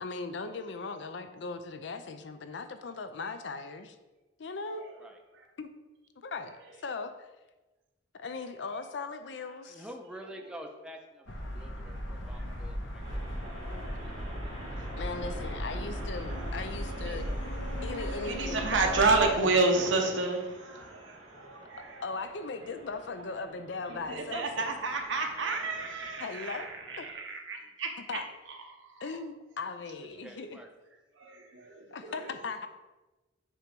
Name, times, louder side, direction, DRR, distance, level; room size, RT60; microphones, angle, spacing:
voice 1, 0.0-4.0 4.4-4.9 5.6-5.7 6.2-6.6 6.8-7.3 8.1-9.8 15.0-17.3 17.8-19.0 22.0-24.6 26.2-26.7 27.0-27.1 28.1-28.2 29.0-30.6 31.9-32.7, left 4 dB, 70° left, 9 dB, 0.5 m, -38 dB
voice 2, 4.6-4.9 5.3-5.5 6.5-6.6 11.6-12.6 13.8-14.6 15.9-22.1 23.9-28.2 28.5-29.2 31.1-32.3, right 3 dB, 80° right, 3 dB, 1.0 m, -32 dB
voice 3, 9.6-13.2 30.0-30.7, equal, 5° right, 2 dB, 0.6 m, -48 dB
sound 1, 11.3-19.3, equal, 90° left, 1.1 m, -36 dB
sound 2, 13.0-27.1, right 1 dB, 30° right, 1.5 m, -49 dB
7.5 x 3.0 x 5.2 m, 1.1 s
head